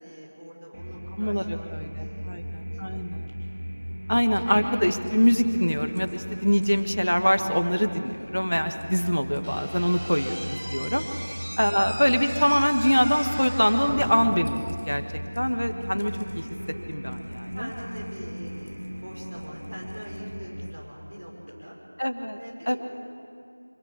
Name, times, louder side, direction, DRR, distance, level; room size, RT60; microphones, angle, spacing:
voice 1, 0.0-1.7 2.0-3.1 3.4-3.8 10.9-11.1 13.7-14.0 17.5-21.8 22.4-22.8, equal, 45° right, -3 dB, 5.9 m, -42 dB
sound 1, 0.7-20.7, equal, 60° right, 2.3 m, -37 dB
voice 2, 1.1-3.3 4.1-11.0 11.6-14.6 14.9-15.0 15.3-16.4 16.9-17.7 22.0-22.4 22.7-22.8, equal, 70° left, 8 dB, 1.6 m, -24 dB
sound 2, 1.9-21.5, equal, ahead, 2.0 m, -51 dB
Slam / Squeak, 9.4-14.4, equal, 80° right, 5.8 m, -37 dB
25.5 x 13.5 x 8.5 m, 2.4 s
figure-of-eight pair, 175°, 0 cm